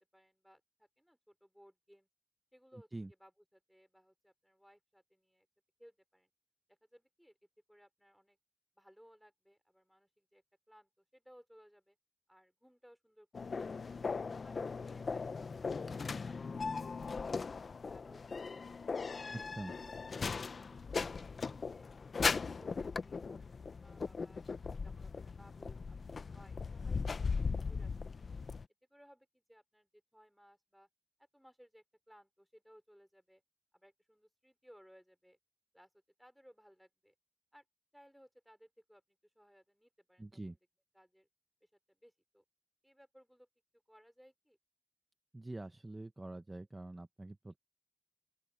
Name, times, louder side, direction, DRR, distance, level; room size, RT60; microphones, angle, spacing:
voice 1, 0.0-2.1 2.5-2.9 3.2-5.5 5.8-6.3 6.7-7.4 7.7-8.4 8.8-12.0 12.3-14.1 14.4-14.6 14.9-17.5 17.8-19.5 19.8-21.9 22.2-24.4 24.8-28.3 28.9-30.9 31.2-33.4 33.7-35.4 35.7-35.9 36.2-37.1 37.5-37.6 37.9-40.6 40.9-41.3 41.6-42.4 42.8-43.5 43.7-44.6, equal, ahead, 4.9 m, -63 dB
sound 1, 13.3-28.6, left 4 dB, 75° left, 0.6 m, -39 dB
voice 2, 19.3-19.7 40.2-40.6 45.3-47.6, right 2 dB, 25° right, 0.8 m, -45 dB
open air
wide cardioid pair, 100°, 0 cm